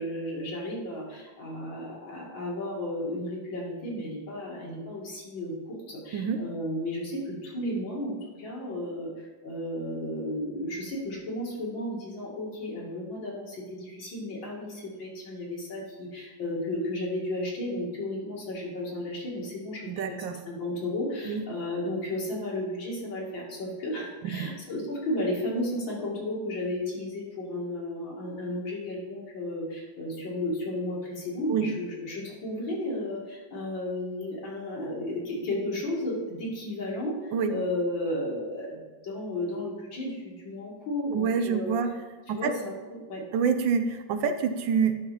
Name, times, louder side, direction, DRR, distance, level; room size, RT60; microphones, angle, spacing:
voice 1, 0.0-19.9 20.5-41.7 42.3-43.2, left 1 dB, 75° left, -4 dB, 2.9 m, -33 dB
voice 2, 19.9-20.4 21.2-21.4 24.2-24.5 31.5-31.7 37.3-37.5 41.1-41.9 42.3-42.6 43.3-45.0, right 6 dB, 75° right, 8 dB, 1.4 m, -27 dB
11.0 x 5.8 x 4.2 m, 1.3 s
omnidirectional pair, 2.1 m